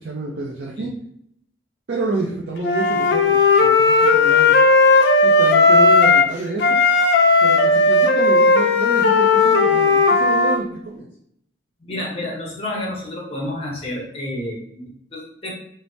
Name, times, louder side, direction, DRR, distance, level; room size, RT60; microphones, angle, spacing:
voice 1, 0.0-0.9 1.9-4.6 5.2-6.8 7.4-11.1, right 2 dB, 70° right, -3 dB, 0.4 m, -28 dB
Wind instrument woodwind instrument, 2.6-6.3 6.6-10.6, left 3 dB, 75° left, 0.4 m, -15 dB
voice 2, 11.8-15.5, left 1 dB, 35° left, -3 dB, 0.8 m, -30 dB
3.2 x 2.0 x 2.6 m, 0.70 s
head